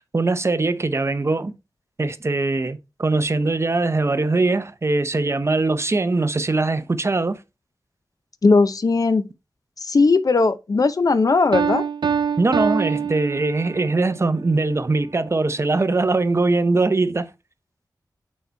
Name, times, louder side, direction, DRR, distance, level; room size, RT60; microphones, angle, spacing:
voice 1, 0.1-1.5 2.0-7.4 12.4-17.3, right 3 dB, 40° right, 0.7 m, -21 dB
voice 2, 8.4-9.2 9.8-11.8, left 3 dB, 55° left, 0.6 m, -18 dB
Piano, 11.5-14.0, right 7 dB, 90° right, 0.4 m, -24 dB
6.5 x 4.1 x 4.5 m
wide cardioid pair, 90°, 7 cm